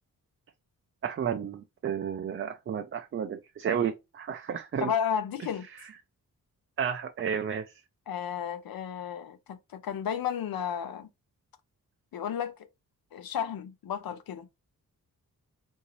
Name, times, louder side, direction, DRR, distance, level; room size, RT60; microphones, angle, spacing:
voice 1, 1.0-4.9 6.8-7.7, right 8 dB, 40° right, 0.4 m, -32 dB
voice 2, 4.8-5.7 8.1-11.1 12.1-12.5 13.1-14.5, left 8 dB, 85° left, 0.7 m, -33 dB
3.8 x 2.7 x 2.9 m
wide cardioid pair, 155°, 34 cm